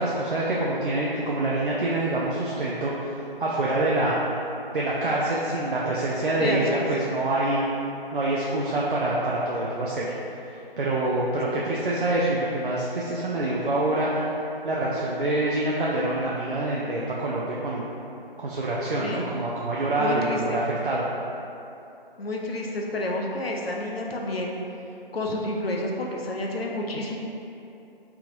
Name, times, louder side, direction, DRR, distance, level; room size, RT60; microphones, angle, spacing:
voice 1, 0.0-4.1 4.7-7.6 8.1-10.1 10.8-14.4 14.6-17.8 18.4-21.0, right 2 dB, 60° right, -5 dB, 0.5 m, -26 dB
voice 2, 6.4-6.8 11.5-11.6 19.0-19.3 20.0-20.6 22.2-24.5 25.1-27.2, left 1 dB, 75° left, 0 dB, 0.6 m, -29 dB
3.4 x 3.0 x 2.5 m, 2.8 s
figure-of-eight pair, 165°, 30 cm